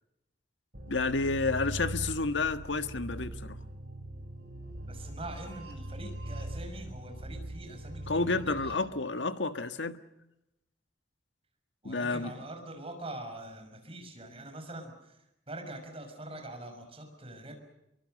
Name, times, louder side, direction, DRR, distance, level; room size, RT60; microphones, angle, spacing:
sound 1, 0.7-8.7, right 1 dB, 60° right, 7.0 m, -41 dB
voice 1, 0.9-3.6 8.1-10.0 11.8-12.3, left 3 dB, 90° left, 10 dB, 1.6 m, -30 dB
voice 2, 4.9-8.2 8.5-8.8 11.8-17.5, right 1 dB, 30° right, 5 dB, 6.0 m, -44 dB
27.0 x 23.5 x 6.6 m, 0.88 s
head